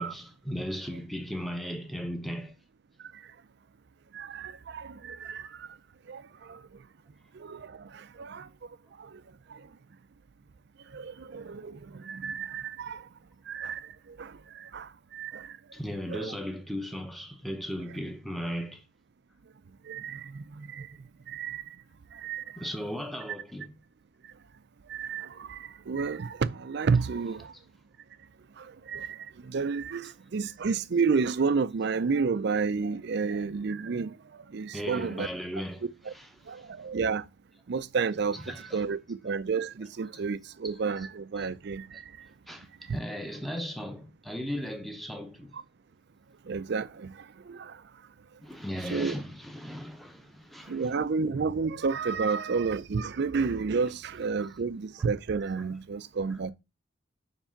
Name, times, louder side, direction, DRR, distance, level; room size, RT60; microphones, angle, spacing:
voice 1, 0.0-2.5 5.2-5.3 15.7-18.8 22.6-23.8 27.0-27.4 34.7-36.7 38.3-39.0 40.1-40.2 40.6-41.1 41.3-41.5 42.5-45.5 48.4-51.0 52.0-52.2 55.0-55.1 56.3-56.4, equal, ahead, 0.7 m, -37 dB
voice 2, 4.1-5.7 6.1-6.6 7.3-8.5 9.0-9.2 9.5-9.6 10.9-13.0 13.5-15.6 16.1-16.3 19.9-20.9 21.3-21.7 22.1-22.7 24.9-27.5 28.6-34.2 34.5-35.3 36.1-36.2 36.5-37.3 37.7-42.3 42.9-43.0 45.5-45.6 46.5-47.8 48.9-49.1 50.7-56.5, right 5 dB, 55° right, 0.4 m, -31 dB
7.1 x 3.4 x 5.7 m
head